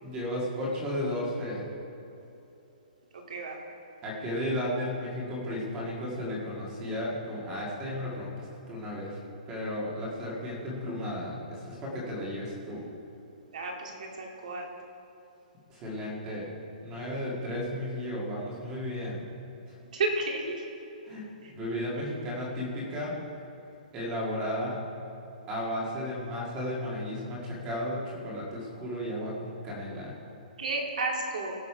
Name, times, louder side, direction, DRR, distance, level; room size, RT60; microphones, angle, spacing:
voice 1, 0.0-1.7 4.0-9.2 9.5-12.8 15.7-16.5 16.8-19.2 21.0-23.2 23.9-24.8 25.5-30.1, left 1 dB, 15° right, -4 dB, 1.8 m, -34 dB
voice 2, 3.1-3.6 13.5-14.7 19.9-20.6 21.4-21.5 30.6-31.6, right 2 dB, 60° right, 1 dB, 2.1 m, -32 dB
17.0 x 6.6 x 4.9 m, 3.0 s
hypercardioid pair, 180°, 5 cm